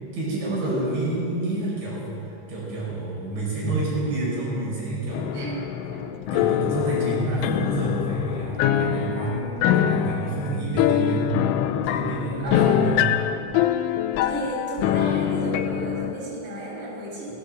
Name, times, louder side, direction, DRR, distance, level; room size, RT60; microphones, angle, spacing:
voice 1, 0.1-2.1 2.5-5.3 6.3-11.3 11.9-13.1, right 2 dB, 60° right, -5 dB, 7.7 m, -28 dB
sound 1, 5.1-16.1, left 10 dB, 80° left, 3.3 m, -24 dB
voice 2, 5.3-5.6 5.9-6.1 12.4-13.2 14.2-17.3, right 1 dB, 25° right, -5 dB, 7.6 m, -33 dB
23.5 x 19.5 x 7.7 m, 2.8 s
omnidirectional pair, 5.8 m